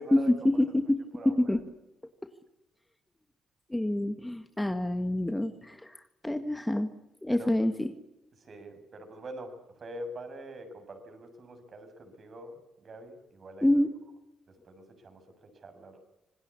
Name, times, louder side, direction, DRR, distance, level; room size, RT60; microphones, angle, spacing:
voice 1, 0.1-1.0 1.3-1.6 3.7-6.9 7.2-7.9 13.6-13.9, left 1 dB, 10° left, 8 dB, 1.8 m, -27 dB
voice 2, 1.1-1.5 7.3-7.7 8.4-13.8 14.7-15.2 15.6-16.0, right 1 dB, 45° right, 7 dB, 7.1 m, -44 dB
26.5 x 20.0 x 8.5 m, 0.89 s
cardioid pair, 90°, 0 cm